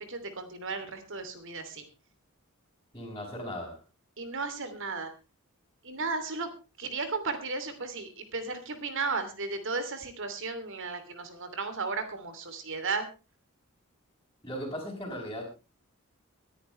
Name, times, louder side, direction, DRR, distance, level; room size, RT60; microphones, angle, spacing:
voice 1, 0.1-1.9 4.2-5.1 5.8-6.5 6.8-13.1, right 4 dB, 60° right, 9 dB, 2.9 m, -34 dB
voice 2, 2.9-3.8 14.4-15.4, equal, 15° left, -6 dB, 5.2 m, -37 dB
23.5 x 10.5 x 3.2 m, 0.31 s
head